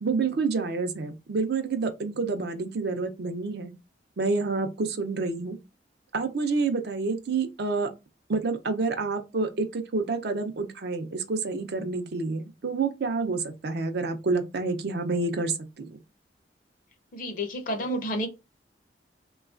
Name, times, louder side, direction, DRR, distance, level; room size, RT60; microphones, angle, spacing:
voice 1, 0.0-3.7 4.2-5.6 6.1-7.9 8.3-16.0, right 4 dB, 65° right, 0.5 m, -28 dB
voice 2, 17.1-18.3, equal, 50° left, 0.5 m, -30 dB
3.1 x 2.3 x 2.4 m
head